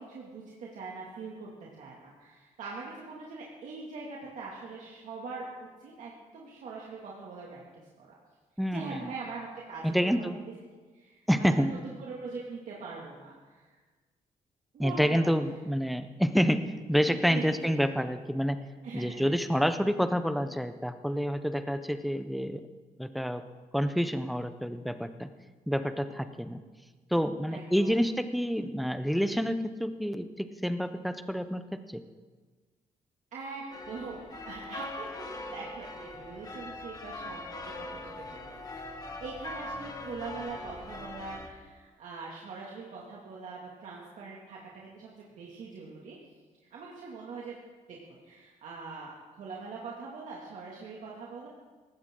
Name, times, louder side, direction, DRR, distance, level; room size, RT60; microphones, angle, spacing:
voice 1, 0.0-1.5 1.8-8.1 8.7-10.4 10.9-13.7 14.7-15.3 17.1-17.8 18.8-19.6 27.5-28.0 33.3-38.6 39.2-46.2 46.7-47.6 47.9-51.5, right 4 dB, 70° right, -4 dB, 2.3 m, -42 dB
voice 2, 8.6-9.0 9.8-10.4 11.3-11.7 14.8-18.6 18.9-22.6 23.0-23.4 23.7-25.3 25.7-26.6 27.1-31.6 31.9-32.0, equal, ahead, 9 dB, 0.7 m, -28 dB
sound 1, 33.7-41.5, left 2 dB, 30° left, 1.5 m, -41 dB
18.5 x 16.0 x 3.8 m, 1.4 s
cardioid pair, 160°, 13 cm